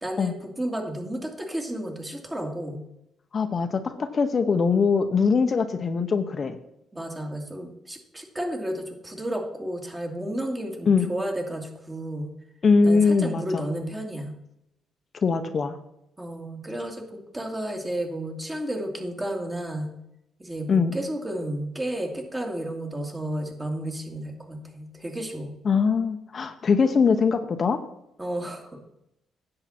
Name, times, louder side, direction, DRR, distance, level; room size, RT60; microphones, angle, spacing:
voice 1, 0.0-2.8 6.9-12.3 12.8-14.3 16.2-19.9 20.4-25.5 28.2-28.8, right 1 dB, 15° right, 2 dB, 2.4 m, -32 dB
voice 2, 3.3-6.6 10.9-11.1 12.6-13.7 15.2-15.8 20.7-21.0 25.6-27.8, left 5 dB, 45° left, 7 dB, 0.9 m, -22 dB
10.0 x 7.7 x 4.4 m, 0.82 s
cardioid pair, 90°, 0 cm